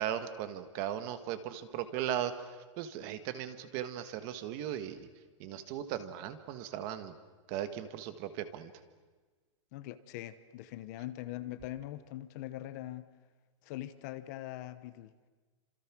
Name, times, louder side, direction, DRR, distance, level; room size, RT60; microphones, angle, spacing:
voice 1, 0.0-2.3 2.8-5.1 5.4-7.1 7.5-8.7, right 10 dB, 30° right, 10 dB, 1.5 m, -37 dB
voice 2, 9.7-13.1 13.6-15.1, left 14 dB, 35° left, 12 dB, 0.9 m, -42 dB
29.5 x 27.0 x 6.2 m, 1.3 s
supercardioid pair, 175°, 16 cm